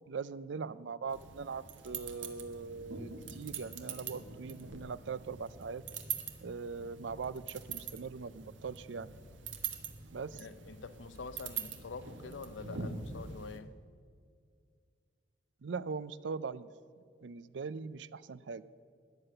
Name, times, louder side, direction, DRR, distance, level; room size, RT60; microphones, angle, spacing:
voice 1, 0.1-5.8 6.4-9.1 10.1-10.5 15.6-16.7 17.2-18.6, right 5 dB, 70° right, 0.5 m, -41 dB
sound 1, 1.1-13.6, right 6 dB, 85° right, 1.3 m, -44 dB
voice 2, 10.3-13.8, left 4 dB, 75° left, 0.6 m, -46 dB
13.5 x 9.8 x 6.7 m
head